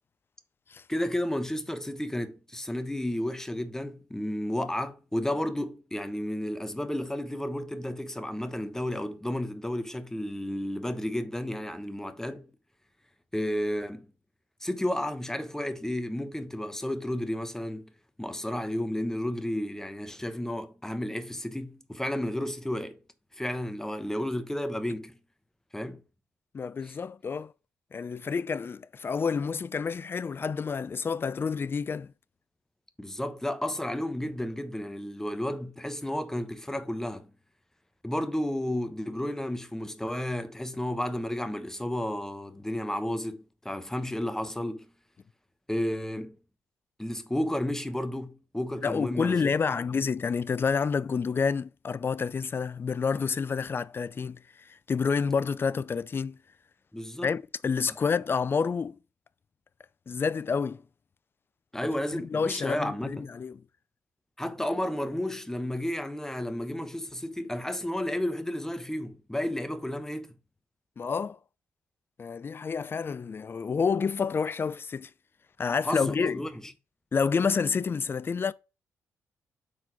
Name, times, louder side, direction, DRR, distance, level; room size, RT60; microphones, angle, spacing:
voice 1, 0.9-12.5 13.3-14.1 14.6-17.9 18.2-23.0 23.4-25.1 25.7-26.0 26.8-26.9 33.0-37.3 38.0-44.9 45.7-46.4 47.0-49.5 56.9-57.3 61.7-63.3 64.4-70.3 75.8-76.7, left 1 dB, 10° left, 1.0 m, -32 dB
voice 2, 26.5-27.5 27.9-32.1 48.8-54.4 54.9-56.4 57.2-59.0 60.1-60.8 62.1-63.6 71.0-71.4 72.2-75.1 75.6-76.4 77.1-78.5, left 5 dB, 35° left, 0.4 m, -29 dB
4.6 x 3.9 x 5.6 m
hypercardioid pair, 50°, 6 cm